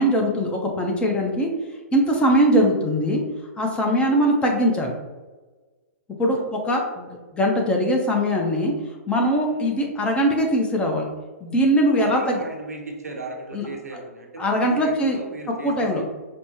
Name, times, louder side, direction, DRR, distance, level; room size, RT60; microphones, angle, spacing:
voice 1, 0.0-1.5 1.9-3.2 3.6-4.9 6.2-8.7 9.1-11.1 11.4-12.4 13.5-13.7 14.4-15.2 15.6-16.0, equal, 15° left, 1 dB, 0.6 m, -21 dB
voice 2, 12.0-14.4 14.7-16.0, right 2 dB, 90° right, 1 dB, 0.8 m, -37 dB
5.2 x 2.1 x 2.9 m, 1.3 s
hypercardioid pair, 120°, 8 cm